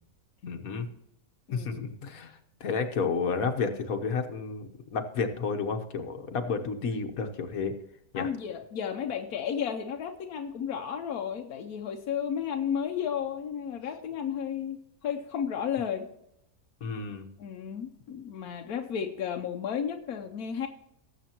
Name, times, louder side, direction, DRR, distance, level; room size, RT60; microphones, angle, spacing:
voice 1, 0.4-0.9 1.5-7.7 8.1-8.3 16.8-17.3, left 5 dB, 70° left, 5 dB, 1.6 m, -31 dB
voice 2, 1.5-1.8 6.9-7.0 8.2-16.1 17.4-20.7, left 8 dB, 90° left, 4 dB, 1.3 m, -33 dB
18.5 x 8.1 x 3.0 m, 0.82 s
omnidirectional pair, 1.5 m